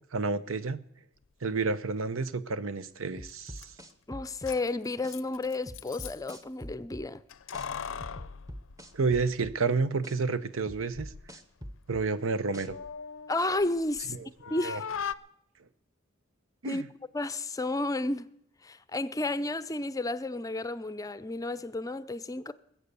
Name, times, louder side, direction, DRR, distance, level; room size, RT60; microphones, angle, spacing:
voice 1, 0.1-0.8 1.4-3.7 8.9-11.1 11.9-12.8 14.1-14.3 14.6-14.8 16.6-16.9, right 4 dB, 80° right, 0.8 m, -30 dB
sound 1, 3.2-4.6 5.0-5.2 5.7-7.1 7.5-7.7 8.0-9.6 10.0-10.2 10.7-12.1 12.5-12.7, equal, 15° right, 1.0 m, -43 dB
Keys jangling, 3.3-3.4 3.6-3.7 4.3-6.4 7.3-9.5 9.8-9.9 10.7-11.3 11.6-14.1 14.4-15.1, left 7 dB, 75° left, 0.6 m, -40 dB
voice 2, 4.1-7.2 13.3-14.2 14.5-14.8 16.7-16.8 17.1-18.3 18.6-22.5, left 2 dB, 15° left, 0.5 m, -32 dB
21.5 x 8.2 x 6.9 m
head